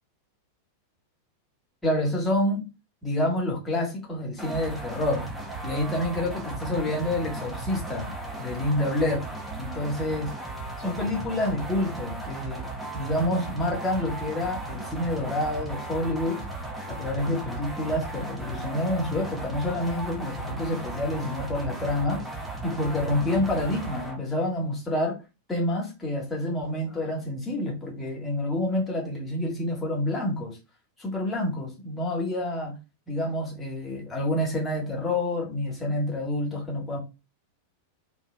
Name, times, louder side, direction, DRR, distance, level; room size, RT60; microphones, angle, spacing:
voice 1, 1.8-2.7 3.0-5.3 5.6-9.2 9.6-10.3 10.8-16.4 16.9-22.2 22.6-25.2 25.5-30.6 31.0-32.8 33.1-37.0, left 1 dB, 15° left, 1.5 m, -28 dB
sound 1, 4.4-24.2, right 2 dB, 5° right, 0.9 m, -36 dB
4.4 x 2.6 x 2.2 m
figure-of-eight pair, 90°, 0 cm